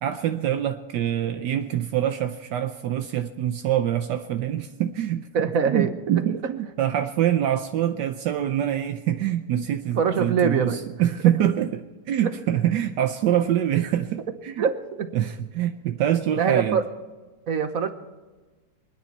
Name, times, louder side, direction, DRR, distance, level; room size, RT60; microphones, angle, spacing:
voice 1, 0.0-14.6 15.1-16.8, right 11 dB, 75° right, 7 dB, 1.3 m, -25 dB
voice 2, 5.3-5.9 10.0-10.8 12.2-12.3 14.6-15.1 16.4-16.8 17.5-17.9, right 6 dB, 55° right, 9 dB, 1.3 m, -23 dB
26.0 x 10.0 x 4.5 m, 1.2 s
omnidirectional pair, 1.9 m